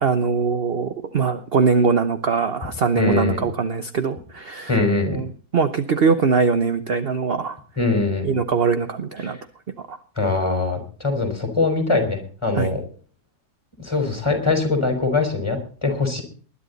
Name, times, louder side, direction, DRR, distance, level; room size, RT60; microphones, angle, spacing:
voice 1, 0.0-4.8 5.1-7.6 8.2-9.4 9.9-10.0 12.6-12.7, right 5 dB, 45° right, 10 dB, 1.0 m, -22 dB
voice 2, 2.9-3.5 4.7-5.2 7.8-8.3 9.2-9.4 10.2-12.8 13.8-16.2, left 3 dB, 15° left, 5 dB, 4.8 m, -22 dB
20.5 x 11.5 x 4.1 m, 0.42 s
omnidirectional pair, 1.7 m